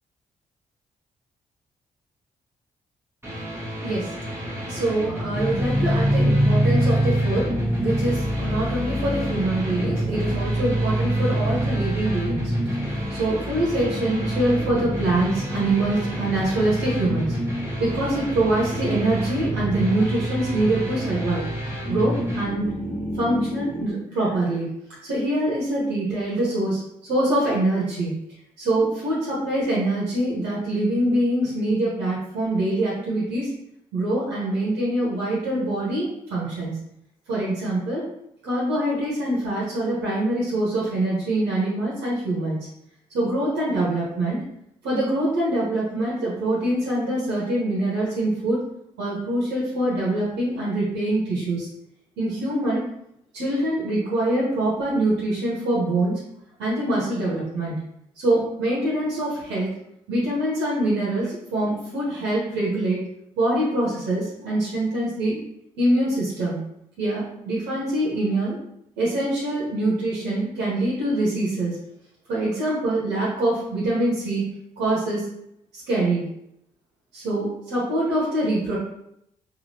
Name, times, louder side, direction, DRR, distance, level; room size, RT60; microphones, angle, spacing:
sound 1, 3.2-22.4, equal, 15° right, 1.2 m, -32 dB
voice 1, 3.7-17.4 17.8-21.4 21.9-22.7 23.2-24.7 25.0-28.1 28.6-33.5 33.9-36.7 37.3-38.0 38.4-42.6 43.1-44.4 44.8-48.6 49.0-51.7 52.2-52.8 53.3-56.2 56.6-57.7 58.2-59.7 60.1-63.0 63.4-65.4 65.8-66.6 67.0-68.6 69.0-71.8 72.3-74.5 74.8-75.3 75.9-76.2 77.1-78.8, right 1 dB, 75° right, -6 dB, 1.1 m, -24 dB
sound 2, 5.3-23.9, right 1 dB, 5° left, 1.1 m, -26 dB
3.2 x 2.6 x 2.7 m, 0.77 s
hypercardioid pair, 40°, 18 cm